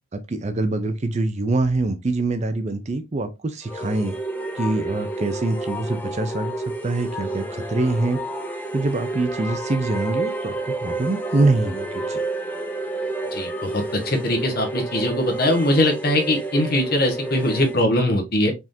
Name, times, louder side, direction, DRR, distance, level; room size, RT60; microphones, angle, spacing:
voice 1, 0.1-4.1 4.5-6.5 6.8-8.2 8.7-12.2, right 2 dB, 30° right, 0.4 m, -24 dB
sound 1, 3.6-17.8, right 2 dB, 10° left, 0.7 m, -30 dB
voice 2, 13.3-18.5, left 1 dB, 45° left, 1.3 m, -21 dB
4.8 x 3.7 x 2.6 m
head